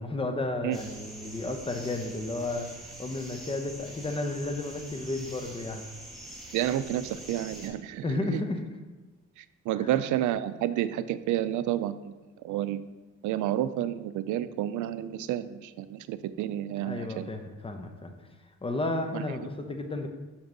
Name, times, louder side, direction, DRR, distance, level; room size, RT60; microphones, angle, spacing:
voice 1, 0.0-5.8 8.0-8.6 9.7-9.9 16.8-18.1 18.6-20.1, left 2 dB, 20° left, 5 dB, 0.8 m, -33 dB
sound 1, 0.7-7.7, right 1 dB, ahead, 1.7 m, -45 dB
voice 2, 6.5-8.1 8.3-8.4 9.4-12.1 12.4-12.8 13.2-17.3 19.1-19.2, right 12 dB, 80° right, 13 dB, 0.4 m, -30 dB
6.0 x 5.2 x 3.9 m, 1.2 s
cardioid pair, 90°, 30 cm